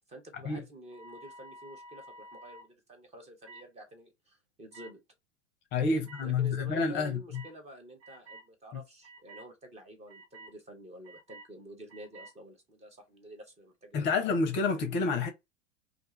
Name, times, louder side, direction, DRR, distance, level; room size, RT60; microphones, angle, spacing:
voice 1, 0.1-5.0 5.9-14.4, equal, 15° right, 0.7 m, -49 dB
sound 1, 0.8-2.7 3.4-3.7 4.7-4.9 6.0-6.2 7.3-7.5 8.0-8.5 9.0-9.5 10.1-10.5 11.0-11.5 11.9-12.3, right 1 dB, 75° right, 1.4 m, -50 dB
voice 2, 5.7-7.2 13.9-15.3, left 4 dB, 30° left, 0.6 m, -28 dB
2.5 x 2.3 x 2.9 m
figure-of-eight pair, 90°, 37 cm